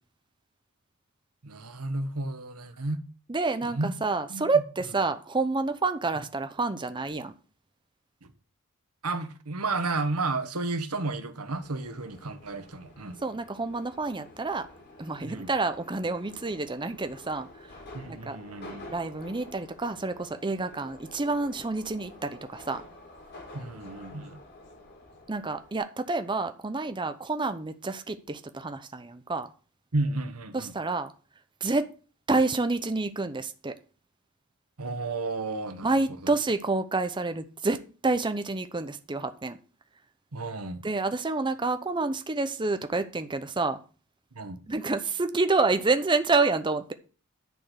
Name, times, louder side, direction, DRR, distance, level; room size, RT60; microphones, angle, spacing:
voice 1, 1.4-3.0 3.6-3.9 4.3-4.5 8.2-8.3 9.0-13.2 15.2-15.5 17.9-18.9 23.5-24.4 29.9-30.7 34.8-36.0 40.3-40.8 44.3-44.6, right 3 dB, 90° right, 1.3 m, -32 dB
voice 2, 3.3-7.3 13.2-14.7 15.0-17.5 18.1-18.4 18.9-22.8 25.3-29.5 30.5-31.1 31.6-31.9 32.3-33.7 35.8-39.6 40.8-43.8 44.7-46.9, right 3 dB, 20° right, 0.7 m, -28 dB
Subway metro underground, 11.5-25.8, left 1 dB, 50° left, 2.9 m, -49 dB
10.5 x 4.5 x 7.9 m
head